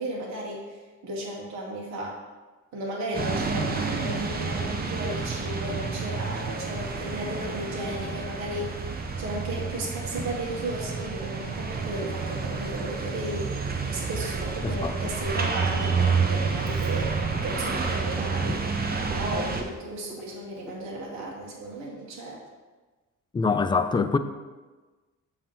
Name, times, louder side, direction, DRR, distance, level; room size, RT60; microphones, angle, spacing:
voice 1, 0.0-2.2 2.7-13.5 13.9-18.7 19.1-22.4, right 1 dB, 65° right, -3 dB, 1.2 m, -34 dB
sound 1, 3.1-19.6, right 4 dB, 30° right, 0.7 m, -29 dB
voice 2, 14.6-15.1 18.4-18.5 23.3-24.2, left 4 dB, 15° left, 9 dB, 0.4 m, -25 dB
Frog, 16.7-21.9, right 1 dB, ahead, 0.9 m, -47 dB
7.1 x 2.9 x 5.4 m, 1.3 s
cardioid pair, 90°, 30 cm